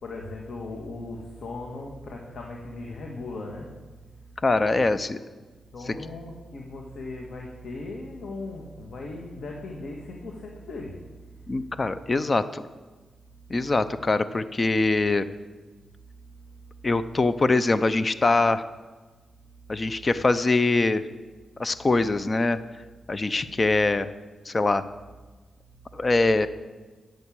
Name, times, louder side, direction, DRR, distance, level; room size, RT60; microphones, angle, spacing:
voice 1, 0.0-4.2 4.8-4.9 5.4-5.5 5.7-12.0 16.2-16.9 19.8-20.1 26.0-26.1, left 2 dB, 70° left, 0 dB, 1.8 m, -39 dB
voice 2, 4.4-5.2 11.5-12.6 13.5-15.3 16.8-18.6 19.7-21.0 21.6-22.6 23.1-24.1 24.5-24.8 25.9-26.5, left 3 dB, 35° left, 13 dB, 0.7 m, -23 dB
11.0 x 7.9 x 8.8 m, 1.3 s
cardioid pair, 95°, 0 cm